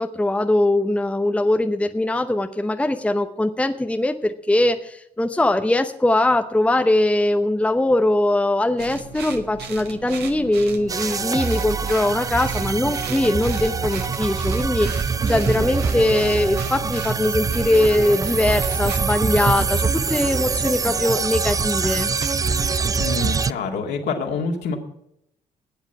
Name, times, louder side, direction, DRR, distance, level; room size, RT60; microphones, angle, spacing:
voice 1, 0.0-22.1, left 1 dB, 5° left, 7 dB, 0.8 m, -21 dB
sound 1, 8.8-23.2, right 5 dB, 55° right, 1.6 m, -37 dB
sound 2, 10.9-23.5, right 5 dB, 15° right, 0.4 m, -24 dB
voice 2, 23.0-24.8, left 4 dB, 55° left, 2 dB, 2.3 m, -26 dB
16.0 x 9.5 x 4.7 m, 0.76 s
figure-of-eight pair, 45°, 20 cm